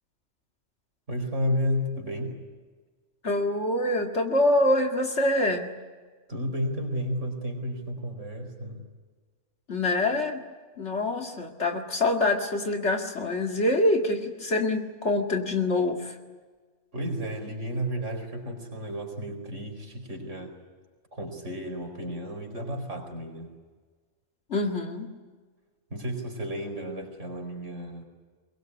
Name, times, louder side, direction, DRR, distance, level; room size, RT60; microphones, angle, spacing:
voice 1, 1.1-2.3 6.3-8.8 16.9-20.5 21.1-23.5 25.9-28.0, equal, 55° right, 3 dB, 5.1 m, -32 dB
voice 2, 3.2-5.7 9.7-10.4 10.8-16.1 24.5-25.1, left 1 dB, 50° left, 3 dB, 2.4 m, -25 dB
23.0 x 21.0 x 9.6 m, 1.4 s
omnidirectional pair, 1.5 m